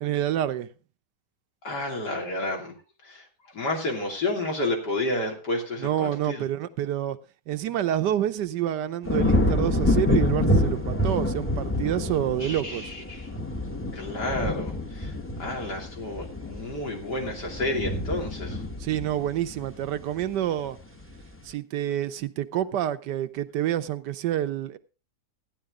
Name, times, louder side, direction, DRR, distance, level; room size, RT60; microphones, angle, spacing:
voice 1, 0.0-0.7 5.8-7.2 7.5-12.9 18.8-20.8 21.4-24.8, right 11 dB, 90° right, 1.4 m, -28 dB
voice 2, 1.6-2.7 3.0-3.2 3.5-6.5 12.4-13.3 13.9-15.1 15.4-18.6, left 2 dB, 80° left, 3.5 m, -30 dB
sound 1, 9.1-20.3 20.8-21.2, left 1 dB, 10° left, 0.7 m, -27 dB
14.0 x 10.0 x 3.7 m
omnidirectional pair, 1.8 m